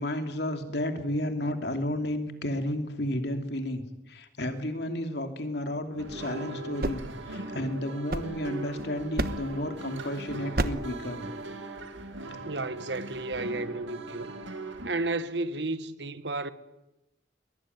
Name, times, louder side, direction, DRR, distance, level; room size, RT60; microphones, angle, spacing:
voice 1, 0.0-3.8 4.1-11.3, left 1 dB, 60° left, 2.9 m, -32 dB
sound 1, 6.0-14.9, right 2 dB, 90° right, 2.6 m, -39 dB
sound 2, 6.5-8.7 9.2-9.7 10.5-11.0, right 1 dB, 50° right, 1.3 m, -32 dB
voice 2, 12.4-14.3 14.8-16.5, right 2 dB, 70° right, 1.5 m, -32 dB
22.0 x 22.0 x 9.4 m
head